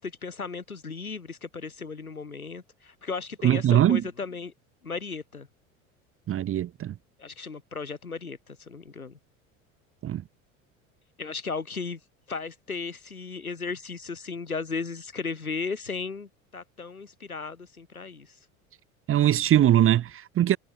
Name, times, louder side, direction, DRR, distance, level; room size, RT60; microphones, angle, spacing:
voice 1, 0.0-4.5 4.8-5.5 7.2-9.2 11.2-12.0 12.3-18.4, left 4 dB, 85° left, 5.8 m, -35 dB
voice 2, 3.4-4.0 6.3-6.9 10.0-10.2 19.1-20.6, right 11 dB, 30° right, 1.2 m, -21 dB
figure-of-eight pair, 70°, 42 cm